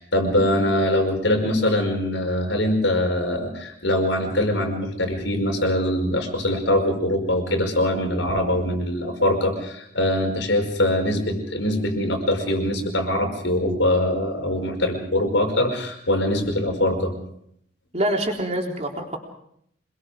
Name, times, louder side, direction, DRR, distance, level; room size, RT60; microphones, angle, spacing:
voice 1, 0.0-17.1, left 1 dB, 85° left, 4 dB, 5.3 m, -23 dB
voice 2, 17.9-19.2, right 1 dB, 35° right, 1 dB, 3.8 m, -25 dB
27.0 x 21.5 x 5.1 m, 0.70 s
head